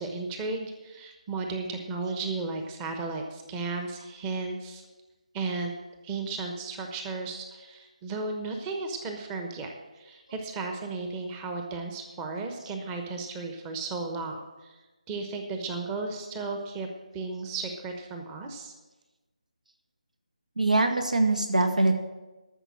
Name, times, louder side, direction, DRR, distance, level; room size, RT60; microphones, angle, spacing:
voice 1, 0.0-4.8 5.3-5.7 6.0-14.8 15.1-16.9 17.1-18.7, right 3 dB, 15° right, 4 dB, 1.0 m, -34 dB
voice 2, 20.6-21.9, right 2 dB, 75° right, 5 dB, 1.9 m, -23 dB
13.0 x 6.9 x 7.5 m, 1.2 s
figure-of-eight pair, 155°, 4 cm